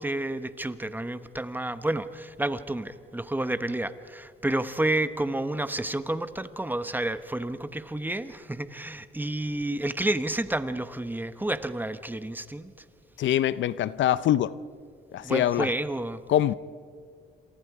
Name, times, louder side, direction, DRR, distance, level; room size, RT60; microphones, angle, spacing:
voice 1, 0.0-12.7 15.2-16.2, right 1 dB, 10° right, 11 dB, 1.1 m, -30 dB
voice 2, 13.2-14.5 15.1-15.7 16.3-16.5, left 12 dB, 70° left, 17 dB, 0.6 m, -24 dB
28.0 x 26.5 x 4.9 m, 2.2 s
cardioid pair, 90°, 20 cm